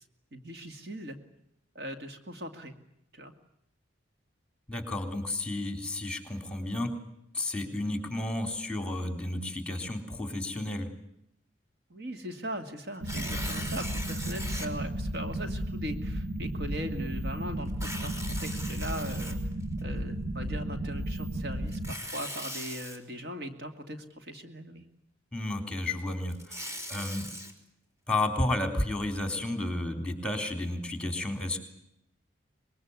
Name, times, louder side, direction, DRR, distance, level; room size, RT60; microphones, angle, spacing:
voice 1, 0.3-1.2 1.7-2.7 3.1-3.3 11.9-19.4 19.8-24.8, equal, 55° right, 6 dB, 2.4 m, -40 dB
voice 2, 4.7-6.9 7.3-10.9 25.3-27.3 28.1-31.6, left 2 dB, 5° left, 6 dB, 3.7 m, -32 dB
Tearing, 12.9-14.7 15.3-15.4 17.7-19.8 21.7-23.0 26.1-27.5, equal, 15° right, 3.6 m, -39 dB
sound 1, 13.0-21.9, right 1 dB, 70° right, 1.9 m, -34 dB
25.0 x 21.5 x 9.7 m, 0.79 s
head